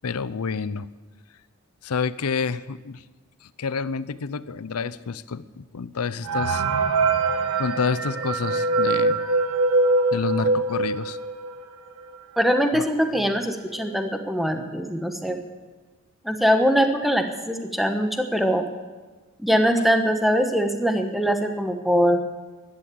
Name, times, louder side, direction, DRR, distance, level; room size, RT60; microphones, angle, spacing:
voice 1, 0.0-0.9 1.8-3.0 3.4-6.6 7.6-9.2 10.1-11.2 12.7-12.9 13.2-13.4, left 5 dB, 85° left, 17 dB, 0.6 m, -29 dB
sound 1, 6.2-11.7 12.1-12.2 12.4-12.6 13.3-13.4 13.8-14.1, right 3 dB, 75° right, 1.2 m, -23 dB
voice 2, 12.4-15.4 16.2-18.6 19.4-22.2, equal, ahead, 5 dB, 1.1 m, -22 dB
14.0 x 11.5 x 8.5 m, 1.3 s
head